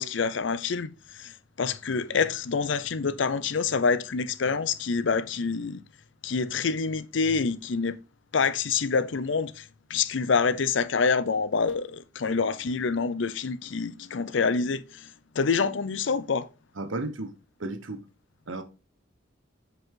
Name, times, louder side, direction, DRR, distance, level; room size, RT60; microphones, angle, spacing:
voice 1, 0.0-5.8 6.2-8.0 8.3-16.5, left 5 dB, 70° left, 0.6 m, -27 dB
voice 2, 16.8-17.3 17.6-18.0 18.5-18.6, right 2 dB, 80° right, 1.1 m, -33 dB
7.5 x 5.2 x 3.7 m
head